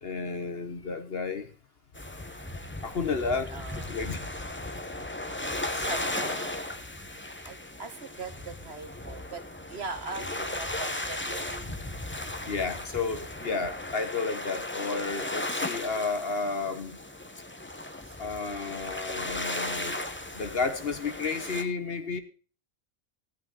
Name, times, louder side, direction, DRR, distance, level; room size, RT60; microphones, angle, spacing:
voice 1, 0.0-1.5 2.8-4.2 5.8-5.9 12.5-17.0 18.2-20.0 20.3-22.2, left 4 dB, 50° left, 9 dB, 1.2 m, -32 dB
sound 1, 1.9-21.6, left 1 dB, 10° left, 0.9 m, -36 dB
voice 2, 3.5-3.9 5.7-6.6 7.4-11.7 18.0-18.2, right 4 dB, 50° right, 7 dB, 1.5 m, -40 dB
16.5 x 8.8 x 3.9 m, 0.39 s
omnidirectional pair, 1.4 m